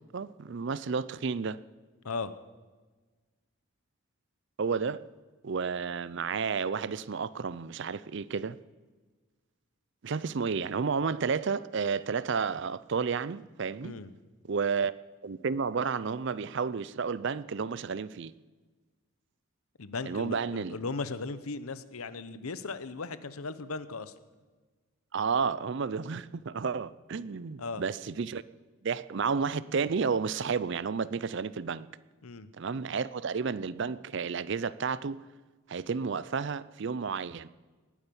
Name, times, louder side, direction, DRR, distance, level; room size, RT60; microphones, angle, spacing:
voice 1, 0.1-1.6 4.6-5.0 5.4-8.6 10.0-13.9 14.5-14.9 15.2-18.3 20.1-20.8 25.1-28.4 28.8-31.9 32.6-35.2 35.7-37.5, right 5 dB, 55° right, 0.5 m, -31 dB
voice 2, 19.8-24.1 27.6-27.8 32.2-32.5, left 4 dB, 85° left, 0.9 m, -37 dB
19.0 x 9.9 x 7.0 m
head